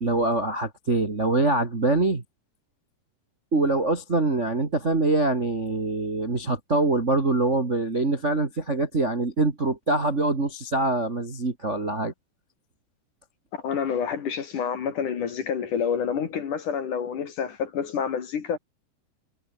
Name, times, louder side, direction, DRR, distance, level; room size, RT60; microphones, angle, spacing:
voice 1, 0.0-2.2 3.5-12.1, right 2 dB, 25° right, 1.6 m, -24 dB
voice 2, 13.5-18.6, left 7 dB, 55° left, 3.4 m, -28 dB
omnidirectional pair, 4.9 m